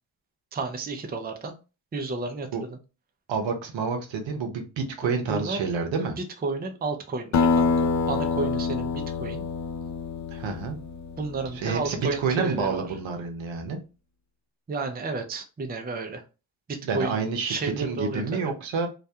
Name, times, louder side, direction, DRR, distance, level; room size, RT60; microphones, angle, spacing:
voice 1, 0.5-1.6 1.9-2.8 5.0-5.6 6.4-9.4 11.2-12.9 14.7-16.2 16.7-17.2 17.4-18.5, right 3 dB, 20° right, 0.5 m, -32 dB
voice 2, 3.3-6.2 10.3-10.8 11.5-13.8 16.8-18.9, right 5 dB, 65° right, 0.8 m, -28 dB
Acoustic guitar, 7.3-12.2, left 5 dB, 40° left, 0.4 m, -27 dB
2.4 x 2.1 x 2.7 m
supercardioid pair, 40°, 49 cm